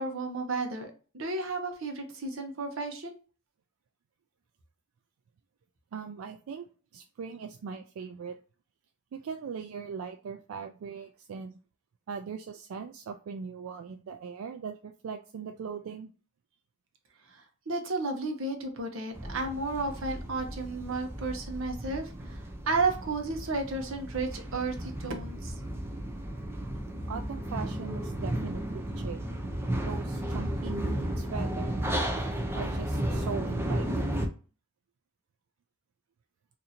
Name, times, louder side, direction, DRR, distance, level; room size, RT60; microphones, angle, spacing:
voice 1, 0.0-3.1 17.3-25.5, right 3 dB, 70° right, 4 dB, 0.8 m, -33 dB
voice 2, 5.9-6.7 6.9-8.4 9.1-11.5 12.1-16.1 27.1-29.2 29.8-32.1 32.5-34.2, right 6 dB, 90° right, 6 dB, 0.3 m, -40 dB
sound 1, 19.1-34.3, right 1 dB, 10° right, 0.5 m, -34 dB
2.7 x 2.6 x 4.2 m, 0.36 s
head